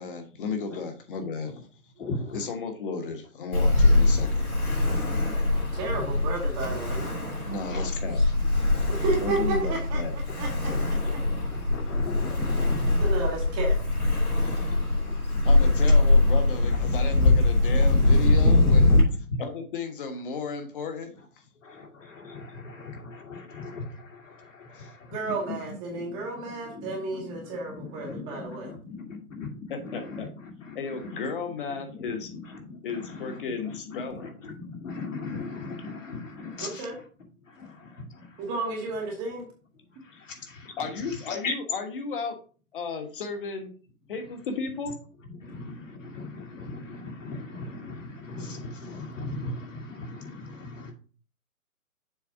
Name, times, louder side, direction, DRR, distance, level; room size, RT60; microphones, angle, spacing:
voice 1, 0.0-1.6 2.3-4.5 7.4-8.2 9.2-10.1 14.4-14.7 15.4-19.0 19.4-21.4 24.7-25.3 25.9-26.0 29.7-30.3 30.7-32.3 32.8-34.4 40.8-42.4 42.7-43.7 44.1-44.9, left 4 dB, 35° left, 6 dB, 1.4 m, -34 dB
voice 2, 2.0-2.5 4.9-6.2 7.5-7.9 8.7-9.0 10.3-10.4 10.7-13.4 14.2-15.9 16.8-17.6 18.0-18.1 18.6-19.4 21.6-25.1 25.4-25.6 25.9-31.3 31.7-37.1 37.4-38.5 39.9-41.5 45.2-50.9, left 3 dB, 60° left, 1 dB, 2.2 m, -39 dB
Ocean, 3.5-19.0, left 2 dB, 85° left, 3.3 m, -22 dB
voice 3, 5.7-7.0 8.7-10.0 10.4-10.7 13.0-13.8 14.6-14.8 25.1-28.7 36.6-36.9 38.4-39.5, right 3 dB, 15° right, -1 dB, 1.0 m, -32 dB
7.0 x 4.0 x 4.7 m, 0.39 s
figure-of-eight pair, 140°, 43 cm